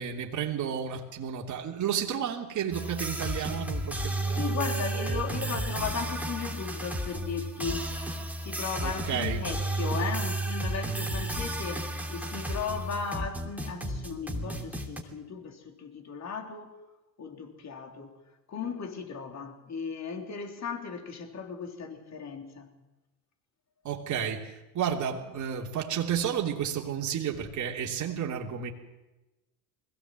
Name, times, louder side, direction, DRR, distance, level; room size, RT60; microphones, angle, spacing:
voice 1, 0.0-5.2 8.8-9.4 23.8-28.7, right 8 dB, 35° right, 0 dB, 3.0 m, -32 dB
sound 1, 2.7-15.0, right 1 dB, 5° right, 3.0 m, -33 dB
voice 2, 4.3-7.8 8.4-16.8 17.2-18.2 18.5-22.7, left 6 dB, 35° left, 4 dB, 3.6 m, -36 dB
21.5 x 16.5 x 7.7 m, 1.1 s
hypercardioid pair, 85°, 48 cm